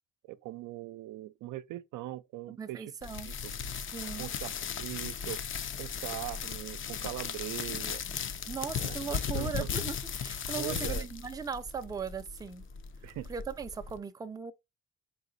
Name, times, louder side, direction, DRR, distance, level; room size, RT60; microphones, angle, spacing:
voice 1, 0.3-2.9 3.2-3.5 4.2-4.5 4.8-5.4 5.8-8.0 8.8-9.7 10.6-11.1 13.0-13.3, right 15 dB, 80° right, 0.5 m, -41 dB
voice 2, 2.6-3.3 3.9-4.2 8.5-12.6 13.0-14.5, right 6 dB, 15° right, 0.4 m, -38 dB
sound 1, 3.0-14.0, left 7 dB, 45° left, 0.5 m, -37 dB
4.0 x 3.8 x 2.6 m
cardioid pair, 90°, 30 cm